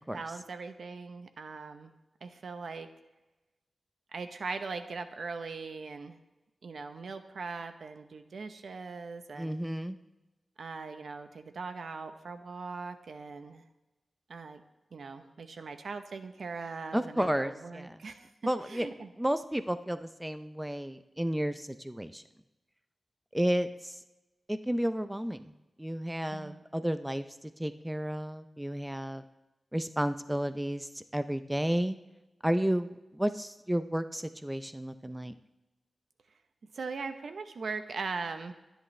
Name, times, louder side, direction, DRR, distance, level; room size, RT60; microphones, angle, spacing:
voice 1, 0.1-1.9 2.2-2.9 4.1-6.2 6.6-9.6 10.6-13.6 14.3-14.6 14.9-18.3 18.7-19.1 26.3-26.6 36.7-38.5, right 4 dB, 70° right, 8 dB, 0.8 m, -40 dB
voice 2, 9.4-10.0 16.9-18.0 18.4-18.9 19.2-22.2 23.3-24.0 24.5-25.5 25.8-29.2 29.7-32.0 32.4-35.3, equal, 5° right, 10 dB, 0.5 m, -32 dB
23.5 x 10.5 x 3.2 m, 1.0 s
wide cardioid pair, 145°, 0 cm